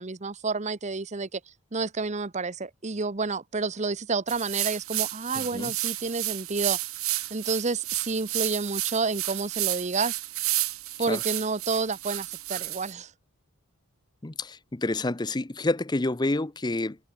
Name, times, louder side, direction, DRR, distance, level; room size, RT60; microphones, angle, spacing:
voice 1, 0.0-1.4 1.7-6.8 7.3-10.2 11.0-13.1, right 4 dB, 30° right, 0.9 m, -29 dB
sound 1, 4.3-12.9, right 17 dB, 75° right, 2.6 m, -31 dB
voice 2, 5.3-5.7 11.1-11.2 14.2-17.0, left 2 dB, 20° left, 0.6 m, -28 dB
head